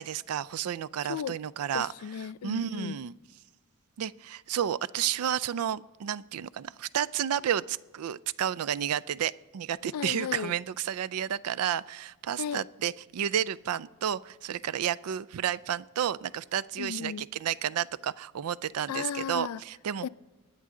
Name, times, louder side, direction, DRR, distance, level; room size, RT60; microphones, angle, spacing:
voice 1, 0.0-1.9 2.4-3.1 4.0-20.1, right 9 dB, 85° right, 0.4 m, -31 dB
voice 2, 1.0-1.4 1.7-3.0 9.9-10.5 12.4-12.6 16.8-17.2 18.9-19.6 20.0-20.1, left 7 dB, 85° left, 0.3 m, -35 dB
24.5 x 9.5 x 3.8 m
head